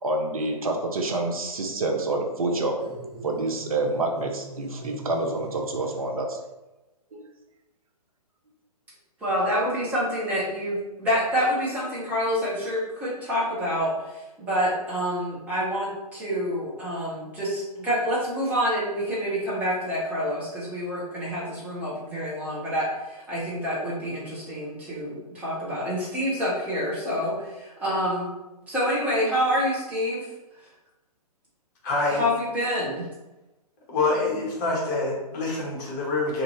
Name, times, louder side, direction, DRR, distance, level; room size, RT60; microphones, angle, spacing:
voice 1, 0.0-2.8 3.2-6.4 7.1-7.3, right 2 dB, 65° right, 2 dB, 0.6 m, -27 dB
sound 1, 2.8-6.3, equal, 30° right, 1.2 m, -41 dB
voice 2, 9.2-28.3 28.7-30.2 32.1-33.1, equal, 10° right, -7 dB, 0.8 m, -27 dB
voice 3, 31.8-32.2 33.9-36.4, left 3 dB, 30° left, -4 dB, 0.9 m, -26 dB
2.5 x 2.5 x 2.9 m, 1.0 s
figure-of-eight pair, 130°, 20 cm